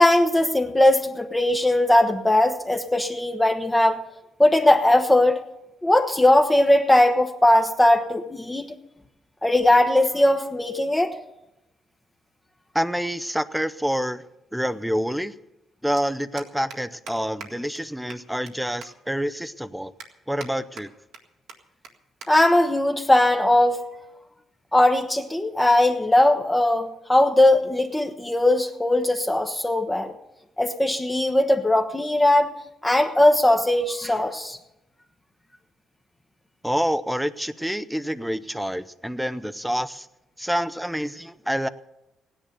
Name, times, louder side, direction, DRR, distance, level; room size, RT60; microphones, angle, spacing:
voice 1, 0.0-4.0 4.4-5.4 5.8-8.7 9.4-11.1 22.3-23.8 24.7-30.1 30.6-32.5 32.8-34.6, left 1 dB, 15° left, 2 dB, 1.1 m, -19 dB
voice 2, 12.7-14.2 14.5-15.3 15.8-19.9 20.3-20.9 36.6-40.1 40.4-41.7, equal, 5° right, 14 dB, 0.7 m, -27 dB
sound 1, 16.0-16.1 16.4-16.8 17.1-17.2 17.4-17.5 17.8-17.9 18.1-18.5 18.8-18.9 19.4-19.5 20.0-20.5 20.8-21.2 21.5-21.6 21.8-21.9 22.2-22.3 22.6-22.9 23.6-23.9, right 6 dB, 85° right, 1.8 m, -41 dB
16.0 x 10.5 x 6.7 m, 0.93 s
cardioid pair, 90°, 0 cm